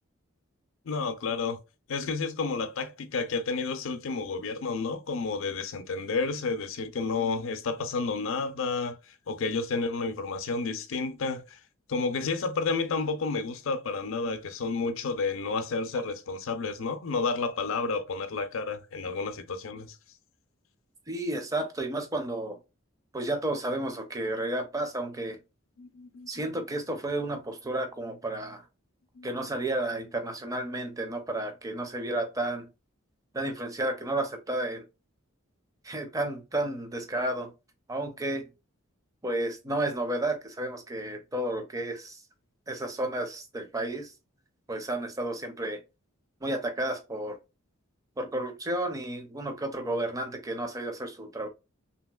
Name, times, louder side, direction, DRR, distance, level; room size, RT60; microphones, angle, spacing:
voice 1, 0.9-1.6 1.9-11.6 11.9-20.0 25.8-26.5 29.2-29.5, left 4 dB, 70° left, 0.5 m, -31 dB
voice 2, 21.1-22.6 23.1-25.4 26.3-28.6 29.2-32.7 33.3-34.8 35.8-37.5 37.9-38.5 39.2-42.2 42.7-44.1 44.7-45.8 46.4-47.4 48.2-51.5, right 1 dB, 15° right, 0.5 m, -32 dB
3.0 x 2.8 x 2.2 m
head